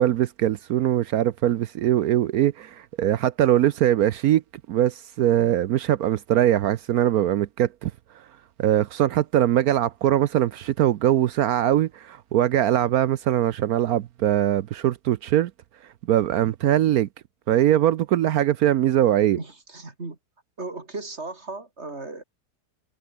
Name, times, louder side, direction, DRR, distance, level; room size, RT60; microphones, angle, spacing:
voice 1, 0.0-4.4 4.7-7.9 8.6-15.5 16.1-17.1 17.5-19.4, right 12 dB, 70° right, 1.1 m, -21 dB
voice 2, 19.3-20.2 20.6-22.2, right 3 dB, 40° right, 3.4 m, -36 dB
omnidirectional pair, 1.8 m